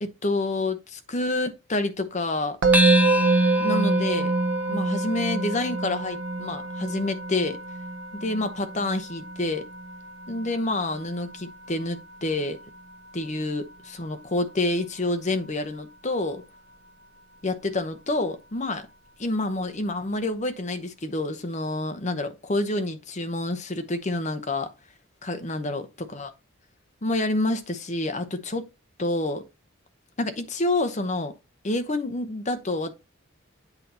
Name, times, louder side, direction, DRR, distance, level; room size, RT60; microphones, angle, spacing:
voice 1, 0.0-2.6 3.6-4.3 4.7-7.6 8.1-9.6 10.3-12.6 13.1-16.4 17.4-18.9 19.2-24.7 25.2-26.3 27.0-28.7 29.0-29.4 30.2-31.3 31.6-32.9, left 2 dB, 35° left, 0.8 m, -28 dB
Musical instrument, 2.6-13.7, right 3 dB, 80° right, 0.7 m, -27 dB
sound 1, 2.7-7.5, left 1 dB, 10° right, 0.4 m, -30 dB
8.2 x 2.8 x 5.3 m
head